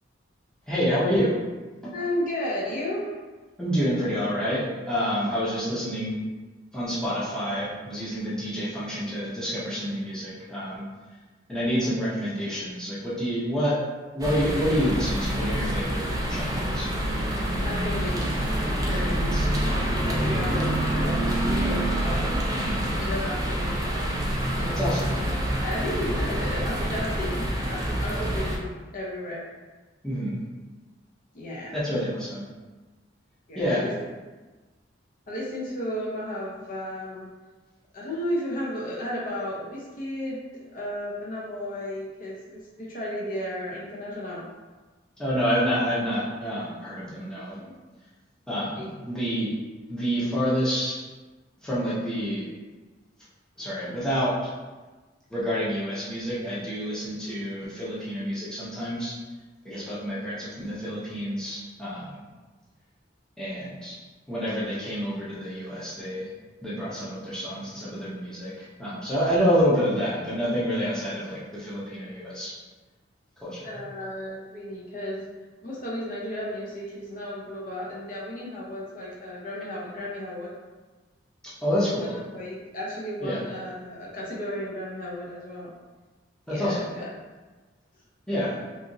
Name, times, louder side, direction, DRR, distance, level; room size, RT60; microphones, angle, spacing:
voice 1, 0.7-1.3 1.8-1.9 3.6-6.2 6.7-10.9 11.5-13.8 14.1-16.0 16.3-16.9 18.8-18.9 19.3-19.5 22.5-22.8 24.7-25.2 30.0-30.4 31.7-32.5 33.6-33.9 45.2-47.6 48.5-49.5 49.9-51.0 51.6-52.5 53.6-54.3 55.3-59.1 59.6-62.1 63.4-63.9 64.3-66.3 66.6-72.5 73.4-73.7 81.6-82.2 83.2-83.4 86.5-86.9 88.3-88.6, equal, 5° left, -9 dB, 0.7 m, -28 dB
voice 2, 1.9-3.2 11.8-11.9 17.6-18.2 18.7-19.3 19.7-22.3 23.0-23.8 24.6-24.7 25.6-29.4 31.3-31.7 33.5-33.9 35.3-37.3 37.9-40.4 40.7-44.5 47.6-47.7 48.8-49.1 59.9-60.1 73.6-75.2 75.6-80.5 82.0-85.7 86.5-87.1, left 1 dB, 45° left, -5 dB, 0.6 m, -34 dB
sound 1, 14.2-28.6, right 1 dB, 20° right, 0.3 m, -26 dB
2.9 x 2.5 x 2.6 m, 1.3 s
head